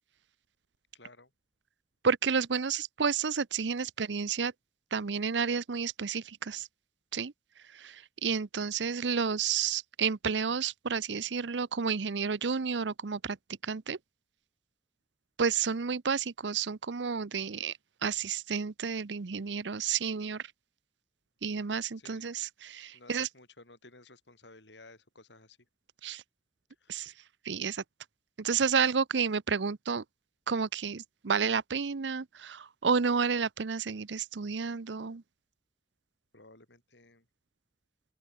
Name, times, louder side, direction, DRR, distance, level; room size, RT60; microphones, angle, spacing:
voice 1, 0.9-1.3 22.0-22.2 22.9-25.7 26.8-27.1 36.3-37.3, left 2 dB, 75° left, 6.8 m, -55 dB
voice 2, 2.0-4.5 4.9-6.7 7.1-7.3 7.7-13.4 13.6-14.0 15.4-20.5 21.4-23.3 26.0-26.2 26.9-27.1 27.4-27.8 28.4-30.0 30.5-35.2, right 6 dB, 80° right, 0.7 m, -31 dB
open air
head